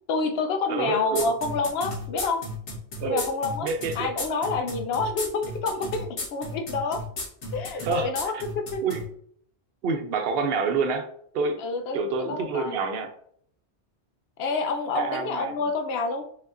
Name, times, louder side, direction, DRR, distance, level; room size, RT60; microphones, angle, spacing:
voice 1, 0.1-2.4 3.0-3.7 4.0-7.0 7.5-8.8 11.6-12.0 12.3-12.7 14.4-16.2, left 3 dB, 65° left, 6 dB, 0.8 m, -28 dB
voice 2, 0.7-1.3 3.0-3.3 3.6-4.1 7.8-8.4 8.8-9.0 9.8-11.1 11.3-11.6 11.9-13.1 14.9-15.7, right 4 dB, 60° right, 6 dB, 0.8 m, -27 dB
sound 1, 1.2-9.0, left 1 dB, 85° left, 1.5 m, -34 dB
5.2 x 3.4 x 2.5 m, 0.63 s
omnidirectional pair, 1.1 m